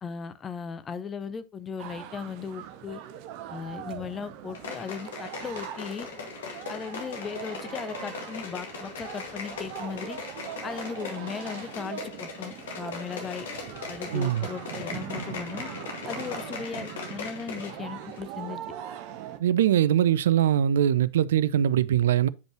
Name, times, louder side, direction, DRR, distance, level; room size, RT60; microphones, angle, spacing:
voice 1, 0.0-3.0 3.5-6.1 6.7-10.2 10.6-13.5 13.9-15.7 16.1-18.6, left 6 dB, 20° left, 0.6 m, -37 dB
sound 1, 1.8-19.4, right 10 dB, 45° right, 0.8 m, -41 dB
sound 2, 4.5-17.8 18.1-18.2, left 5 dB, 60° left, 1.9 m, -39 dB
voice 2, 14.1-14.5 19.4-22.3, right 10 dB, 60° right, 0.4 m, -22 dB
8.1 x 5.2 x 2.9 m
figure-of-eight pair, 90°, 0 cm